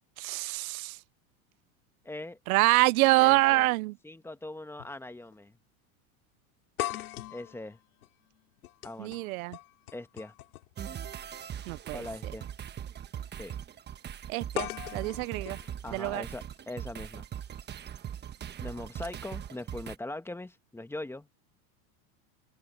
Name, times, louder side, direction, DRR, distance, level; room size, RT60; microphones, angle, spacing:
voice 1, 0.2-1.0 2.5-3.9 9.0-9.6 11.7-12.0 14.3-15.6 15.9-16.2, right 21 dB, 80° right, 0.6 m, -26 dB
voice 2, 2.0-2.4 3.2-3.7 4.0-5.6 7.3-7.8 8.8-9.2 9.9-10.3 11.9-12.5 13.3-13.5 15.8-17.3 18.6-21.3, left 2 dB, 5° left, 1.4 m, -41 dB
sound 1, 3.6-3.7 4.8-5.0 5.3-5.4 6.8-10.8 12.0-12.2 14.6-16.6, left 15 dB, 90° left, 4.5 m, -40 dB
sound 2, 10.8-20.0, right 9 dB, 25° right, 1.2 m, -41 dB
supercardioid pair, 125°, 42 cm